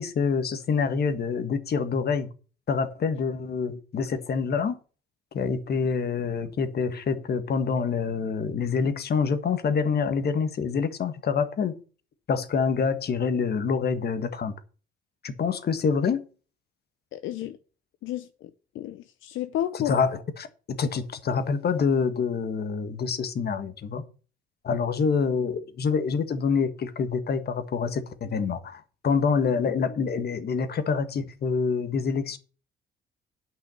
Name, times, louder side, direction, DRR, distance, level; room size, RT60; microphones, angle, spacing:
voice 1, 0.0-2.3 2.7-4.8 5.3-11.7 12.3-14.5 15.2-16.2 19.7-24.0 24.6-32.4, left 5 dB, 55° left, 1.5 m, -26 dB
voice 2, 17.1-17.6 18.0-19.9, left 12 dB, 80° left, 0.7 m, -32 dB
9.3 x 5.6 x 7.0 m
cardioid pair, 90°, 20 cm